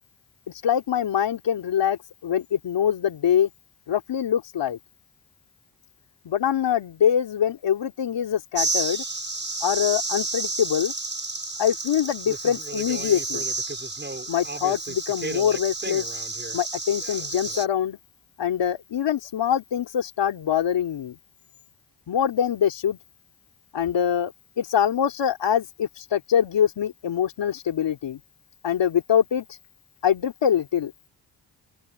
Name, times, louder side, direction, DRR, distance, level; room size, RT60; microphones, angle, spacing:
voice 1, 0.6-3.5 3.9-4.8 6.3-9.0 9.6-10.9 11.6-13.4 14.3-16.1 16.5-18.0 18.4-21.2 22.1-23.0 23.7-24.3 24.6-28.2 28.6-29.4 30.0-30.9, left 9 dB, 70° left, 3.4 m, -24 dB
sound 1, 8.5-17.7, right 3 dB, 25° right, 7.5 m, -30 dB
open air
supercardioid pair, 45°, 45 cm